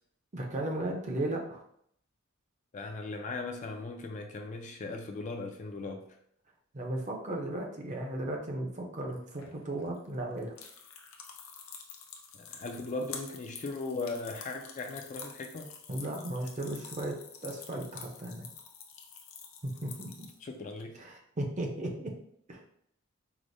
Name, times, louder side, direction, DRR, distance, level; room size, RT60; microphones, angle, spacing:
voice 1, 0.3-1.6 6.7-10.5 15.9-17.2 17.4-18.5 19.6-20.1 21.0-22.1 22.5-22.6, right 1 dB, 35° right, 1 dB, 0.6 m, -35 dB
voice 2, 2.7-6.0 12.3-15.7 20.4-21.0, left 3 dB, 35° left, 4 dB, 0.3 m, -38 dB
sound 1, 9.1-20.8, left 6 dB, 90° left, 0.5 m, -48 dB
4.7 x 2.0 x 2.6 m, 0.69 s
head